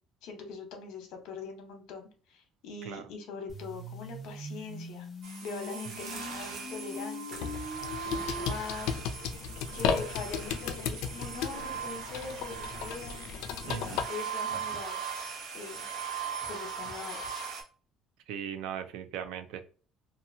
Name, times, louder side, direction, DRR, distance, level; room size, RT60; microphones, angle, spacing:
voice 1, 0.2-5.1 5.4-9.0 9.7-15.0 15.5-15.9 16.5-17.3, left 4 dB, 70° left, 4 dB, 0.9 m, -42 dB
sound 1, 3.5-8.5, left 1 dB, 20° left, 0.8 m, -42 dB
sound 2, 5.2-17.6, right 6 dB, 60° right, 0.8 m, -39 dB
sound 3, 7.3-14.0, left 6 dB, 85° left, 0.4 m, -35 dB
voice 2, 13.6-14.1 18.3-19.6, right 8 dB, 80° right, 10 dB, 0.4 m, -38 dB
2.8 x 2.3 x 2.6 m, 0.38 s
cardioid pair, 155°, 0 cm